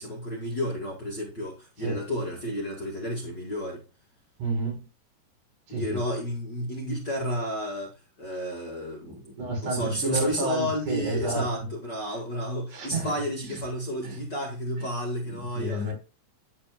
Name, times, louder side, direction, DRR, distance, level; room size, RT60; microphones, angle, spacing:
voice 1, 0.0-3.8 5.7-9.2 9.6-15.9, equal, 40° left, 1.9 m, -31 dB
voice 2, 4.4-4.9 5.7-6.0 8.3-8.4 9.0-11.5 12.7-13.1 13.4-13.6 14.0-14.2 14.8-14.9 15.2-15.9, right 2 dB, 60° right, 4.8 m, -31 dB
10.5 x 7.5 x 2.2 m
omnidirectional pair, 3.9 m